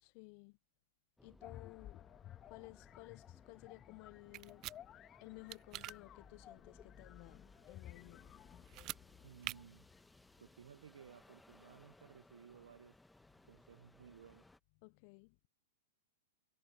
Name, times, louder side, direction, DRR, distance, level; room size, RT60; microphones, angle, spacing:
voice 1, 0.0-0.6 1.2-2.1 2.5-4.7 5.2-8.3 14.8-15.4, left 31 dB, 50° left, 0.5 m, -56 dB
sound 1, 1.2-14.6, left 2 dB, 5° left, 1.3 m, -65 dB
sound 2, 1.4-10.2, left 12 dB, 30° left, 1.3 m, -57 dB
sound 3, 4.3-4.8 5.5-6.0 8.7-9.0 9.4-9.6, right 17 dB, 40° right, 0.4 m, -44 dB
voice 2, 9.2-9.9 10.4-13.0 13.4-14.5, right 8 dB, 80° right, 0.7 m, -58 dB
hypercardioid pair, 120°, 0 cm